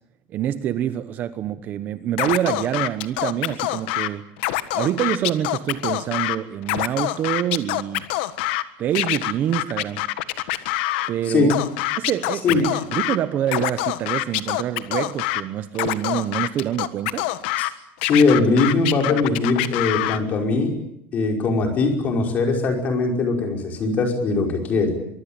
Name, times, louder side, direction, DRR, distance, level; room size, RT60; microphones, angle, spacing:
voice 1, 0.3-4.3 4.7-8.0 8.8-10.0 11.1-11.5 12.0-17.3, right 11 dB, 30° right, 1.0 m, -26 dB
Scratching (performance technique), 2.2-4.1 4.4-6.4 6.6-8.6 8.9-11.1 11.5-13.2 13.5-15.4 15.7-17.7 18.0-20.2, left 17 dB, 70° left, 1.6 m, -25 dB
voice 2, 18.0-20.8 21.1-25.0, left 3 dB, 30° left, 5.4 m, -20 dB
24.0 x 23.5 x 8.9 m
cardioid pair, 170°, 6 cm